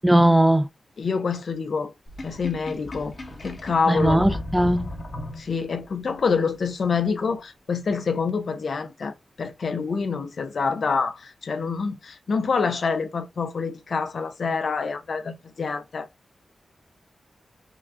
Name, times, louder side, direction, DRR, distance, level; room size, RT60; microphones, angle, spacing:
voice 1, 0.0-0.7 3.9-5.0, right 1 dB, 10° right, 0.4 m, -19 dB
voice 2, 1.0-1.9 2.2-3.1 3.4-4.2 5.4-16.1, left 5 dB, 70° left, 0.6 m, -26 dB
Sink (filling or washing), 2.1-5.8, left 1 dB, 50° left, 1.1 m, -34 dB
5.9 x 2.4 x 2.3 m
cardioid pair, 60°, 0 cm